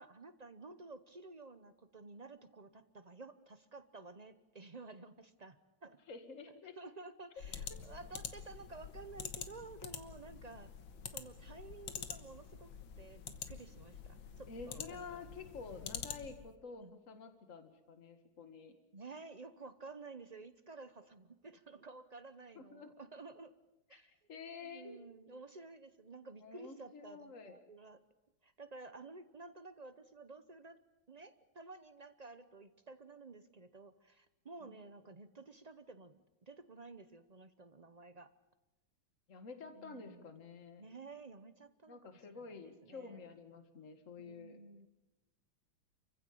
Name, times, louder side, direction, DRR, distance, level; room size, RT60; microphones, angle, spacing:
voice 1, 0.0-6.0 6.8-10.7 11.1-12.7 13.0-15.3 15.7-15.8 16.8-16.9 18.9-23.5 23.9-24.2 24.6-28.0 28.4-30.8 31.1-38.3 39.7-40.4 40.8-43.2 44.2-44.9, right 3 dB, 50° right, 11 dB, 0.5 m, -53 dB
voice 2, 6.1-6.7 10.5-10.7 14.5-18.7 22.6-22.9 23.9-25.0 26.4-27.6 34.6-34.8 39.3-40.8 41.9-44.6, left 4 dB, 40° left, 8 dB, 2.2 m, -50 dB
sound 1, 7.4-16.5, left 7 dB, 80° left, 2.0 m, -47 dB
29.0 x 15.5 x 8.7 m, 1.0 s
omnidirectional pair, 2.1 m